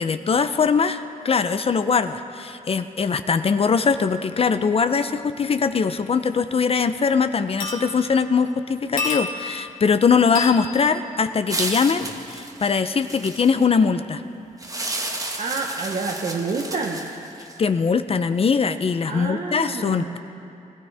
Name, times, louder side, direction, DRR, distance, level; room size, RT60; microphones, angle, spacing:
voice 1, 0.0-12.0 12.3-14.2 17.6-20.2, left 5 dB, 45° left, 10 dB, 0.5 m, -21 dB
sound 1, 6.4-6.5 6.8-7.1 7.6-8.3 9.0-9.7 10.3-10.7 12.0-12.2 13.2-13.3, left 4 dB, 80° left, 1.7 m, -30 dB
sound 2, 11.5-13.6 14.6-17.6, right 2 dB, 25° right, 1.2 m, -31 dB
voice 2, 15.4-17.1 19.0-20.2, right 4 dB, 55° right, 0 dB, 1.1 m, -28 dB
21.0 x 14.0 x 3.4 m, 2.6 s
cardioid pair, 90°, 14 cm